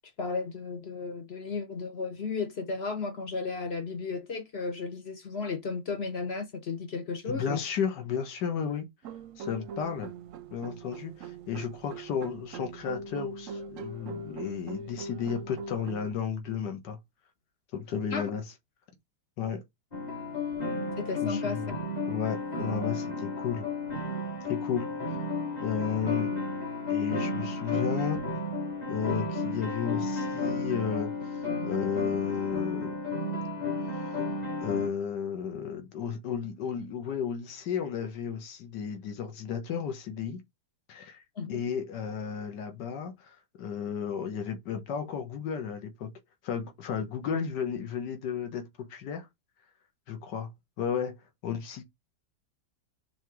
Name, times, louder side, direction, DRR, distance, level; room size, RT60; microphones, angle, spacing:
voice 1, 0.2-7.6 18.1-18.3 21.0-21.7 41.4-41.6, left 4 dB, 45° left, 0.9 m, -34 dB
voice 2, 7.3-8.9 9.4-10.1 10.5-17.0 17.7-18.4 19.4-19.6 21.2-21.8 22.1-23.7 24.5-24.9 25.6-26.3 26.9-28.2 28.9-31.3 31.6-33.0 33.9-34.1 34.6-40.4 40.9-41.2 41.5-46.1 46.4-49.3 50.1-50.5 50.8-51.2 51.4-51.8, left 7 dB, 75° left, 1.8 m, -33 dB
sound 1, 9.0-16.1, right 4 dB, 65° right, 0.8 m, -41 dB
sound 2, 19.9-34.9, left 3 dB, 25° left, 1.4 m, -32 dB
5.0 x 4.1 x 4.7 m
omnidirectional pair, 1.8 m